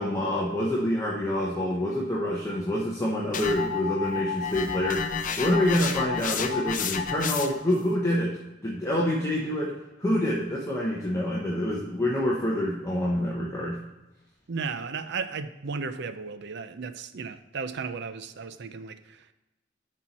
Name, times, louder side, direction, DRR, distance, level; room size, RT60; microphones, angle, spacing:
voice 1, 0.0-5.1 5.4-8.4 8.6-9.7 10.0-13.8, left 1 dB, 15° left, -4 dB, 1.0 m, -27 dB
sound 1, 3.3-7.7, left 6 dB, 45° left, 0.6 m, -31 dB
voice 2, 14.5-19.3, right 5 dB, 60° right, 11 dB, 0.5 m, -35 dB
10.5 x 4.4 x 4.2 m, 1.0 s
head